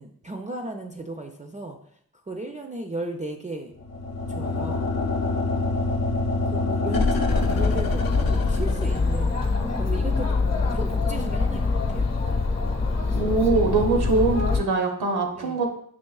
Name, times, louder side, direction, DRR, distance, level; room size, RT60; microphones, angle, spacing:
voice 1, 0.0-1.8 2.3-3.7 4.3-4.9 6.4-9.4 9.8-10.3 10.7-12.1 15.3-15.6, right 2 dB, 20° right, 2 dB, 0.4 m, -35 dB
sound 1, 3.8-9.4, left 3 dB, 65° left, 0.6 m, -25 dB
Chatter, 7.3-14.6, left 3 dB, 40° left, 0.9 m, -24 dB
voice 2, 13.1-15.7, right 3 dB, 85° right, 2 dB, 0.8 m, -23 dB
5.4 x 3.0 x 2.3 m, 0.66 s
cardioid pair, 45°, 38 cm